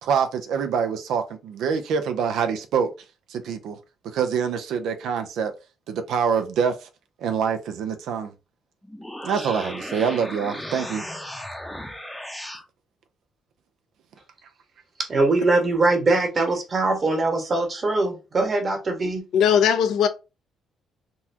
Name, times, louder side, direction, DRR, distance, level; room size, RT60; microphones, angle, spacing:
voice 1, 0.0-2.9 3.3-3.8 4.1-5.6 5.9-6.9 7.2-8.3 9.2-11.0, right 6 dB, 80° right, 0.5 m, -25 dB
sound 1, 8.8-12.7, left 1 dB, 5° left, 0.7 m, -36 dB
voice 2, 15.0-19.2, right 2 dB, 40° right, 1.2 m, -22 dB
voice 3, 19.3-20.1, left 8 dB, 80° left, 0.6 m, -18 dB
3.9 x 2.3 x 2.8 m
cardioid pair, 90°, 0 cm